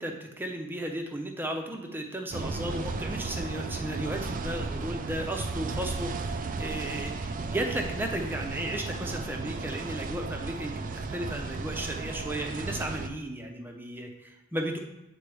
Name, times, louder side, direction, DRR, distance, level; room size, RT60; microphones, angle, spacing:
voice 1, 0.0-14.8, right 1 dB, 10° right, 2 dB, 0.8 m, -35 dB
sound 1, 2.3-13.1, right 3 dB, 35° right, 0.4 m, -34 dB
8.5 x 4.2 x 3.4 m, 0.96 s
head